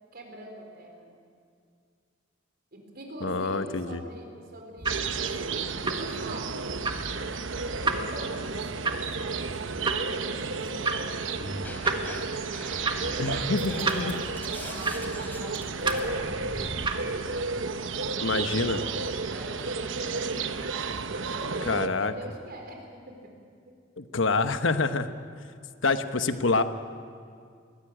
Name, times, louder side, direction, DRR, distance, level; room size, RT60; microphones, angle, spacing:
voice 1, 0.1-1.2 2.7-7.1 7.9-12.3 12.8-20.4 21.0-23.3, right 1 dB, 55° right, 2 dB, 4.4 m, -44 dB
voice 2, 3.2-4.0 13.2-14.2 18.2-18.8 21.7-22.1 24.0-25.1 25.8-26.6, left 3 dB, 85° left, 9 dB, 1.1 m, -26 dB
sound 1, 4.8-17.4, right 3 dB, 25° right, 1.5 m, -34 dB
sound 2, 4.9-21.9, right 4 dB, 80° right, 1.0 m, -32 dB
sound 3, 11.3-12.2 12.5-16.9, equal, 10° left, 3.5 m, -40 dB
21.5 x 16.0 x 10.0 m, 2.3 s
head